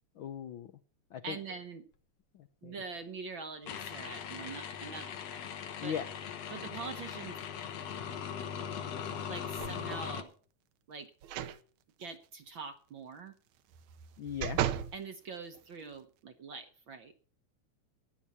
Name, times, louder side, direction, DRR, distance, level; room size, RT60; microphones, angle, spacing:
voice 1, 0.2-0.7 1.1-1.4 2.3-2.8 5.8-6.1 14.2-14.6, left 8 dB, 90° left, 9 dB, 1.1 m, -38 dB
voice 2, 1.2-1.8 2.6-5.1 5.8-5.9 6.5-7.4 9.3-10.3 10.9-11.1 12.0-13.3 14.9-17.1, right 4 dB, 60° right, 7 dB, 1.3 m, -44 dB
sound 1, 3.7-10.2, left 8 dB, 65° left, 2.3 m, -40 dB
sound 2, 9.6-10.1 11.2-11.6 12.0-12.1 13.7-15.0 15.5-15.6, right 10 dB, 80° right, 2.2 m, -35 dB
15.0 x 11.0 x 4.2 m, 0.42 s
omnidirectional pair, 3.3 m